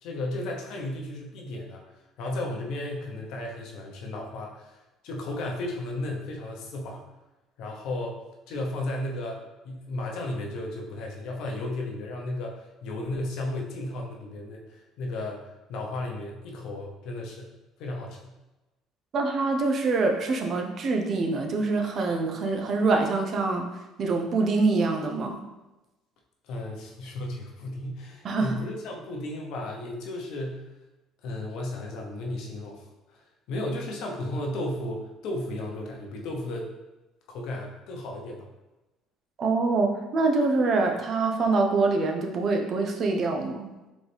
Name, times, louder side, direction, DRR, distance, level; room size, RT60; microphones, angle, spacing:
voice 1, 0.0-7.0 7.6-8.2 8.5-9.4 9.6-17.5 17.8-18.3 26.4-30.7 31.2-33.2 33.5-36.7 37.3-38.5, left 1 dB, 70° left, 0 dB, 0.8 m, -34 dB
voice 2, 19.1-23.7 24.0-25.4 28.2-28.5 39.4-43.7, right 3 dB, 50° right, 3 dB, 0.6 m, -25 dB
4.1 x 3.1 x 3.4 m, 1.0 s
supercardioid pair, 90°, 0 cm